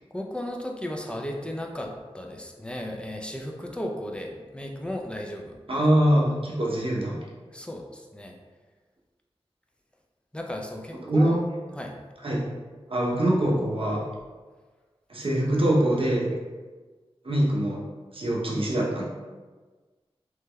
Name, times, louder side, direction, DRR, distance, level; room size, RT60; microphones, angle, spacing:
voice 1, 0.1-5.6 7.5-8.4 10.3-11.4 11.7-11.9, left 1 dB, 10° left, 1 dB, 0.4 m, -35 dB
voice 2, 5.7-7.2 11.0-11.4 12.2-12.6 12.9-14.0 15.1-16.3 17.2-17.8 18.1-19.0, right 1 dB, 60° right, -3 dB, 0.7 m, -23 dB
3.3 x 3.1 x 2.2 m, 1.3 s
wide cardioid pair, 50°, 11 cm